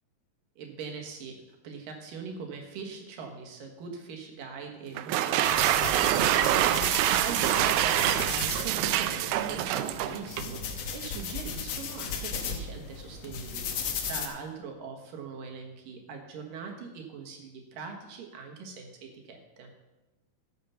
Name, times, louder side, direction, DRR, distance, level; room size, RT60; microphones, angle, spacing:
voice 1, 0.6-19.7, right 5 dB, 70° right, 2 dB, 3.1 m, -41 dB
sound 1, 5.0-10.6, right 12 dB, 85° right, 2.4 m, -26 dB
sound 2, 5.4-14.3, left 5 dB, 70° left, 1.6 m, -36 dB
14.0 x 7.0 x 5.7 m, 1.1 s
omnidirectional pair, 4.2 m